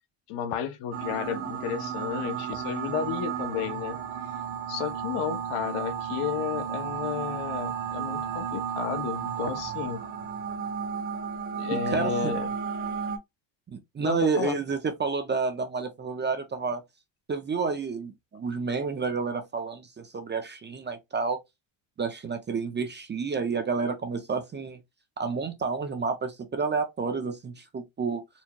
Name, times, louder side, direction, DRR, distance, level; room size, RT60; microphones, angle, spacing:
voice 1, 0.3-4.0 4.7-10.0 11.5-12.5 14.0-14.6, left 8 dB, 80° left, 0.9 m, -32 dB
sound 1, 0.9-13.2, right 7 dB, 80° right, 1.4 m, -33 dB
voice 2, 11.9-12.3 13.7-16.8 17.3-21.4 22.0-24.8 25.2-28.2, right 5 dB, 25° right, 0.4 m, -30 dB
4.4 x 2.3 x 2.8 m
cardioid pair, 170°, 50 cm